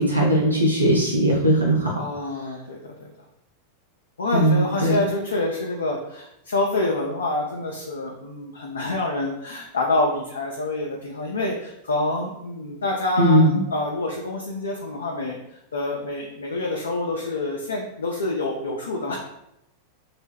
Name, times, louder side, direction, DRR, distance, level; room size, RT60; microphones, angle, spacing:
voice 1, 0.0-1.9 4.3-5.0 13.2-13.6, right 1 dB, 85° right, -3 dB, 0.4 m, -19 dB
voice 2, 1.9-3.1 4.2-13.4 13.7-15.4 15.7-19.2, left 2 dB, 70° left, -1 dB, 0.3 m, -27 dB
2.1 x 2.0 x 3.3 m, 0.83 s
figure-of-eight pair, 90°, 0 cm